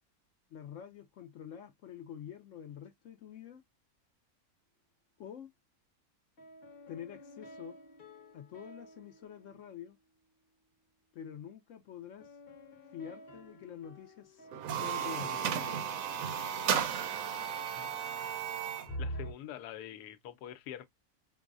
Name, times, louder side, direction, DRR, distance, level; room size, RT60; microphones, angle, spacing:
voice 1, 0.5-3.6 5.2-5.5 6.9-7.8 8.3-10.0 11.1-12.4 12.9-15.6, left 8 dB, 65° left, 0.8 m, -47 dB
sound 1, 6.4-10.2 12.2-15.7 18.9-19.3, equal, 45° left, 1.0 m, -47 dB
sound 2, 14.5-18.9, right 8 dB, 70° right, 1.0 m, -34 dB
voice 2, 19.0-20.9, left 11 dB, 85° left, 1.1 m, -45 dB
5.2 x 2.0 x 2.3 m
omnidirectional pair, 1.6 m